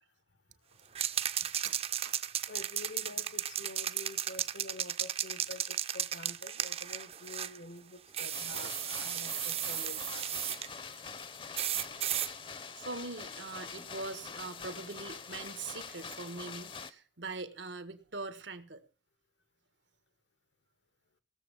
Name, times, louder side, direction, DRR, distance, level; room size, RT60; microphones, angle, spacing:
voice 1, 0.6-1.0 2.5-10.3 12.4-12.9, left 2 dB, 80° left, 1.4 m, -48 dB
sound 1, 1.0-7.6 8.1-10.7 11.6-12.3, right 10 dB, 35° right, 0.6 m, -35 dB
voice 2, 1.6-2.2 8.5-8.7 11.7-11.8 12.7-18.8, right 3 dB, 85° right, 1.7 m, -42 dB
sound 2, 8.3-16.9, left 5 dB, 30° left, 0.7 m, -45 dB
17.0 x 7.4 x 7.1 m
head